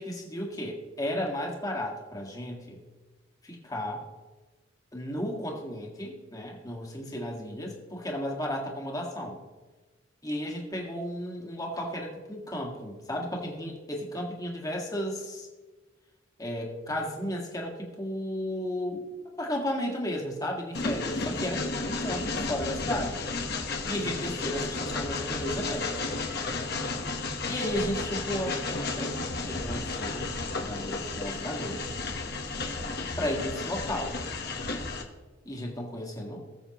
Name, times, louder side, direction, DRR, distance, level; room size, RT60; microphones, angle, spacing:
voice 1, 0.0-2.8 3.4-4.1 4.9-9.4 10.2-15.5 16.4-19.1 19.4-23.2 23.9-25.9 27.5-31.9 33.2-34.2 34.7-34.9 35.5-36.4, equal, 20° left, -1 dB, 1.8 m, -34 dB
Train, 20.7-35.0, left 3 dB, 55° left, 1.1 m, -33 dB
19.5 x 7.3 x 3.0 m, 1.3 s
head